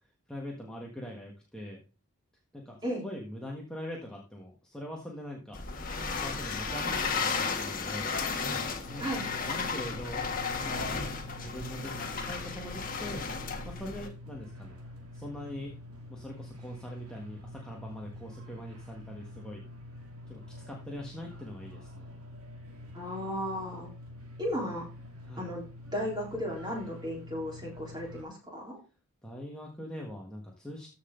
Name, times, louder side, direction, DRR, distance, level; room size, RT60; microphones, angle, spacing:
voice 1, 0.3-1.8 2.5-5.6 6.1-8.1 8.9-10.3 10.6-13.2 13.6-14.8 15.1-15.7 16.1-19.6 20.3-20.4 20.7-22.1 25.2-25.5 29.2-30.9, equal, 5° left, -2 dB, 1.5 m, -42 dB
sound 1, 5.5-14.1, left 5 dB, 40° left, 1.5 m, -34 dB
sound 2, 8.8-28.2, left 1 dB, 75° right, 2.3 m, -47 dB
voice 2, 22.9-23.9 24.4-24.9 25.4-25.6 25.9-28.8, equal, 20° right, -2 dB, 4.0 m, -35 dB
14.0 x 5.8 x 3.9 m, 0.32 s
head